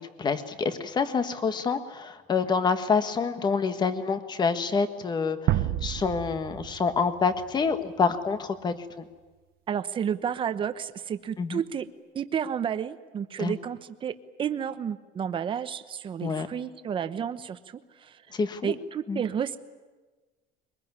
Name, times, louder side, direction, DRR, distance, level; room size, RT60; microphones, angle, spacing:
voice 1, 0.0-8.8 11.4-11.6 13.4-13.5 16.2-16.5 18.3-18.7 19.1-19.2, left 5 dB, 25° left, 10 dB, 1.5 m, -27 dB
sound 1, 5.5-8.4, right 14 dB, 55° right, 0.9 m, -31 dB
voice 2, 9.7-11.9 12.1-18.2 18.6-19.6, right 8 dB, 25° right, 11 dB, 1.0 m, -31 dB
23.0 x 21.0 x 9.7 m, 1.3 s
cardioid pair, 165°, 19 cm